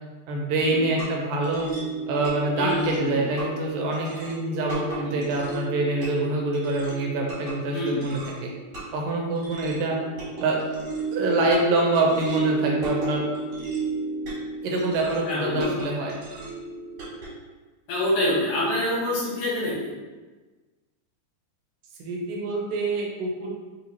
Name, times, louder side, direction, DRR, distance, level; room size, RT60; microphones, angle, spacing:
voice 1, 0.3-1.7 2.1-8.5 8.9-10.0 10.4-10.6 11.1-13.2 14.6-16.2 22.0-23.5, right 2 dB, 80° right, -1 dB, 2.4 m, -25 dB
sound 1, 0.6-17.3, right 3 dB, 65° right, 2.7 m, -34 dB
voice 2, 2.6-3.2 5.0-5.1 7.7-8.0 15.3-15.7 17.9-19.9, left 1 dB, 70° left, -6 dB, 2.4 m, -26 dB
5.4 x 2.8 x 2.8 m, 1.3 s
omnidirectional pair, 4.0 m